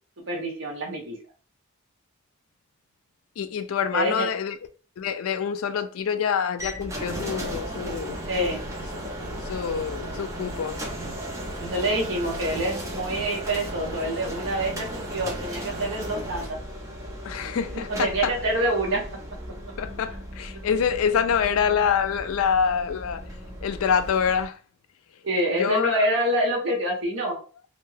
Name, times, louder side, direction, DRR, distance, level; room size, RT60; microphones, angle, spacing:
voice 1, 0.2-1.2 3.9-4.3 8.3-8.6 11.6-16.6 17.9-19.0 25.2-27.4, right 1 dB, 60° right, 0.9 m, -26 dB
voice 2, 3.4-4.6 5.0-8.2 9.3-10.8 17.2-18.3 19.8-23.3 23.6-24.6 25.6-26.0, left 7 dB, 75° left, 0.3 m, -26 dB
sound 1, 6.6-24.5, equal, 15° right, 0.5 m, -35 dB
2.5 x 2.2 x 3.2 m
head